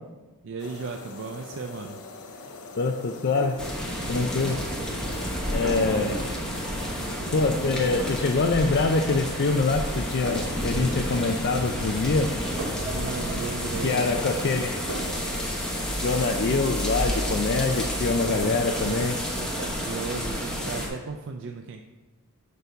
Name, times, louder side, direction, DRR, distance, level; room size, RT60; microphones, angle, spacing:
voice 1, 0.4-2.0 5.7-6.2 12.8-14.3 17.6-17.8 18.3-19.1 19.4-21.8, right 4 dB, 55° right, 4 dB, 0.4 m, -36 dB
sound 1, 0.6-18.7, left 3 dB, 80° left, 0.8 m, -43 dB
voice 2, 2.8-3.6 4.1-4.6 5.5-6.3 7.3-12.3 13.8-14.8 16.0-19.2, left 3 dB, 50° left, 4 dB, 0.4 m, -25 dB
sound 2, 2.9-21.2, equal, 90° right, 1.4 m, -44 dB
sound 3, 3.6-20.9, equal, 5° left, 1.1 m, -30 dB
6.7 x 5.3 x 4.6 m, 1.2 s
head